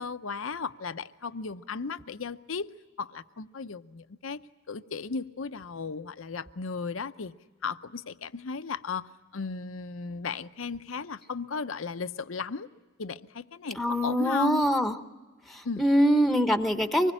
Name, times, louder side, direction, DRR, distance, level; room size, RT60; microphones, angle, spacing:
voice 1, 0.0-2.7 3.0-4.4 4.7-7.3 7.6-12.7 13.0-14.7 15.6-15.8, left 5 dB, 80° left, 12 dB, 0.7 m, -35 dB
voice 2, 13.8-15.0 15.5-17.1, equal, ahead, 8 dB, 0.9 m, -24 dB
25.0 x 20.0 x 10.0 m, 1.3 s
head